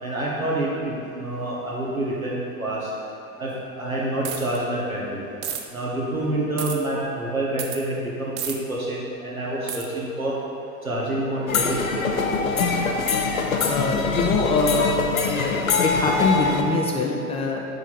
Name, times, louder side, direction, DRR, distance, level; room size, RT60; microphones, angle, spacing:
voice 1, 0.0-2.9 3.4-5.2 5.7-10.4 10.8-12.6, right 1 dB, 90° right, -5 dB, 1.4 m, -27 dB
sound 1, 4.2-4.6 5.4-5.6 6.6-6.8 7.6-7.8 8.4-8.6 9.7-9.9, right 9 dB, 55° right, 0.7 m, -30 dB
sound 2, 11.5-16.6, left 4 dB, 80° left, 0.7 m, -23 dB
voice 2, 13.6-15.5 15.8-17.7, left 3 dB, 15° left, 0 dB, 0.4 m, -24 dB
6.8 x 4.9 x 4.0 m, 2.6 s
figure-of-eight pair, 80°, 41 cm